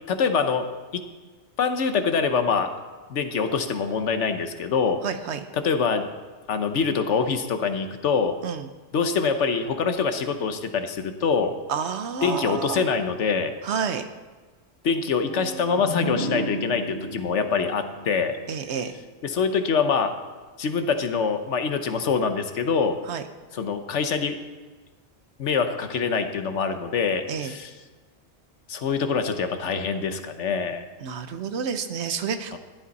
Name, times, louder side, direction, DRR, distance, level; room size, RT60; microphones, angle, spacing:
voice 1, 0.1-0.7 0.9-1.0 1.6-2.7 3.1-5.0 5.5-6.1 6.5-8.3 8.9-11.5 12.2-13.5 14.8-18.4 19.2-20.1 20.6-23.0 23.5-24.4 25.4-27.7 28.7-30.8 32.5-32.6, left 5 dB, 90° left, 8 dB, 1.2 m, -24 dB
voice 2, 5.0-5.5 8.4-8.7 11.7-12.8 13.6-14.1 18.5-18.9 23.1-23.2 27.3-27.6 31.0-32.6, right 6 dB, 75° right, 9 dB, 1.1 m, -29 dB
sound 1, 15.3-19.0, right 1 dB, 50° left, 2.6 m, -33 dB
14.0 x 11.5 x 4.1 m, 1.3 s
omnidirectional pair, 1.2 m